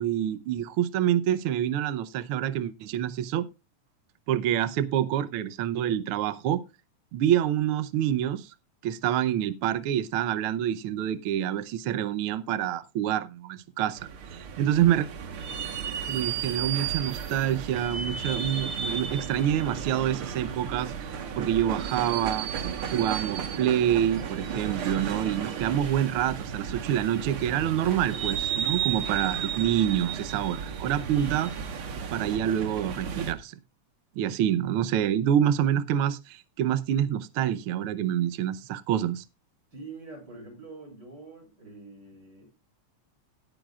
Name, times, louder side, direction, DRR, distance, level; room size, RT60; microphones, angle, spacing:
voice 1, 0.0-3.5 4.3-6.6 7.1-8.5 8.8-15.1 16.1-21.1 21.4-22.5 22.9-31.5 32.1-33.5 34.2-39.2, right 10 dB, 90° right, 1.2 m, -27 dB
sound 1, 14.0-33.3, right 7 dB, 55° right, 1.9 m, -33 dB
voice 2, 39.7-42.5, right 3 dB, 35° right, 7.2 m, -45 dB
18.0 x 9.0 x 2.4 m
omnidirectional pair, 3.3 m